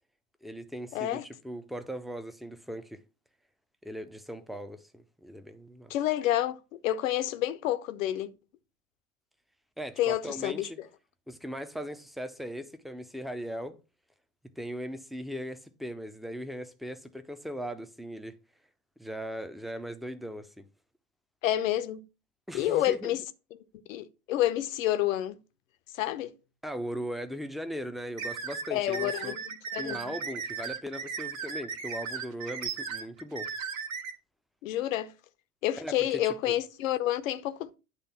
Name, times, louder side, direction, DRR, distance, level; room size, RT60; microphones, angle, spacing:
voice 1, 0.4-3.0 3.8-5.9 9.8-10.8 11.3-13.8 14.6-18.4 19.0-20.7 22.5-23.2 26.6-29.4 29.8-33.5 35.8-36.6, equal, ahead, 0.6 m, -39 dB
voice 2, 0.9-1.3 5.9-8.4 10.0-10.9 21.4-22.0 22.5-23.2 23.5-23.6 23.9-25.4 25.9-26.3 28.7-30.2 34.6-35.1 35.6-37.8, left 13 dB, 65° left, 0.8 m, -29 dB
sound 1, 28.2-34.1, right 6 dB, 65° right, 1.6 m, -36 dB
9.9 x 3.4 x 5.8 m
figure-of-eight pair, 75°, 43 cm